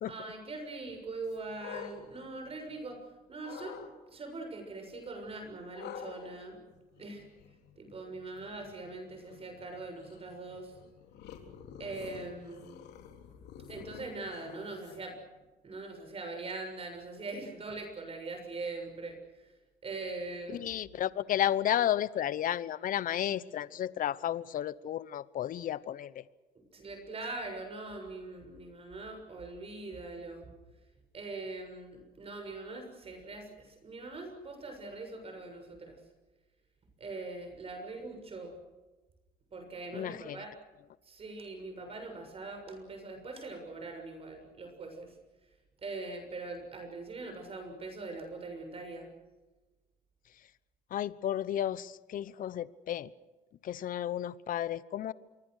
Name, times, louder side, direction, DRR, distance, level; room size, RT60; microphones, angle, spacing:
voice 1, 0.1-3.0 3.3-6.6 7.0-7.3 7.8-10.7 11.8-12.8 13.7-15.2 15.6-19.2 19.8-20.7 26.7-30.5 31.1-36.0 37.0-38.5 39.5-40.5 41.1-45.1 45.8-49.1, right 3 dB, 35° right, 5 dB, 6.8 m, -42 dB
sound 1, 1.2-3.0 3.4-3.9 5.8-15.2, left 8 dB, 80° left, 3.7 m, -49 dB
voice 2, 20.5-26.2 39.9-40.4 50.9-53.1 53.6-55.1, left 11 dB, 55° left, 18 dB, 0.9 m, -32 dB
27.0 x 23.0 x 6.6 m, 1.2 s
cardioid pair, 110°, 17 cm